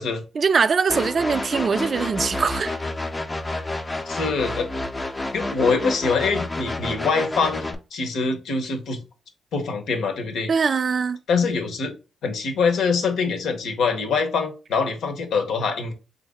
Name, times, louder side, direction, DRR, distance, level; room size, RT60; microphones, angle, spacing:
voice 1, 0.4-2.8 10.5-11.2, right 5 dB, 50° right, 0.3 m, -22 dB
sound 1, 0.9-7.7, left 2 dB, 25° left, 0.6 m, -29 dB
voice 2, 4.1-4.7 5.3-9.0 9.5-10.5 11.3-11.9 12.2-15.9, left 4 dB, 80° left, 0.8 m, -24 dB
3.4 x 2.6 x 3.4 m
cardioid pair, 65°, 0 cm